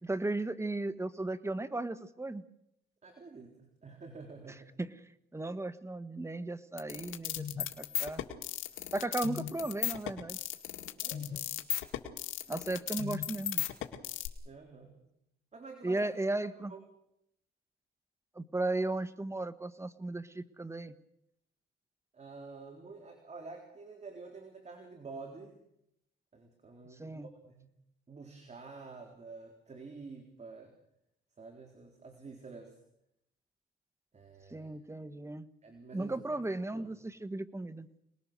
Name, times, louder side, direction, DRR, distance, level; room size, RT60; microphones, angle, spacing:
voice 1, 0.0-2.4 4.8-4.9 5.3-8.2 8.9-10.4 12.5-13.6 15.8-16.7 18.3-20.9 27.0-27.3 34.5-35.5 35.9-37.9, right 2 dB, 15° right, 13 dB, 1.4 m, -35 dB
voice 2, 3.0-4.7 5.3-5.5 11.0-11.6 14.4-15.0 15.5-16.1 16.4-16.8 22.1-25.6 26.3-27.7 28.1-30.7 31.4-32.8 34.1-34.7 35.6-36.9, right 4 dB, 35° right, 3 dB, 4.1 m, -49 dB
sound 1, 6.8-14.3, left 11 dB, 85° left, 2.1 m, -35 dB
28.0 x 20.0 x 6.8 m, 0.79 s
cardioid pair, 90°, 20 cm